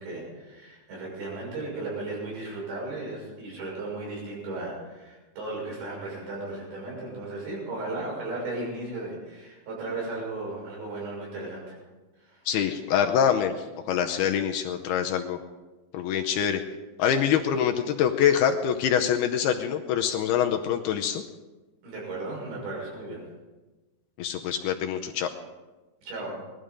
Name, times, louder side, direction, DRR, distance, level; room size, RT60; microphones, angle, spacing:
voice 1, 0.0-11.8 12.2-12.4 21.8-23.2 26.0-26.4, right 2 dB, 85° right, -3 dB, 8.7 m, -35 dB
voice 2, 12.5-13.5 13.9-15.4 15.9-16.6 17.0-21.2 24.2-25.3, left 8 dB, 80° left, 4 dB, 2.5 m, -25 dB
20.0 x 12.5 x 5.2 m, 1.2 s
omnidirectional pair, 5.1 m